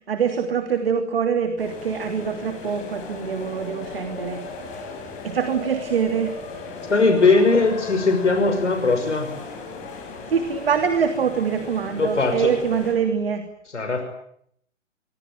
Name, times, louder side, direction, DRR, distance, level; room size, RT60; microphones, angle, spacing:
voice 1, 0.1-4.4 5.2-6.3 10.3-13.5, right 7 dB, 50° right, 8 dB, 3.1 m, -24 dB
sound 1, 1.6-12.9, left 3 dB, 20° left, 7.7 m, -37 dB
voice 2, 6.9-9.3 12.0-12.5 13.7-14.1, left 3 dB, 65° left, 6 dB, 5.8 m, -19 dB
26.0 x 23.5 x 9.0 m, 0.69 s
figure-of-eight pair, 130°, 38 cm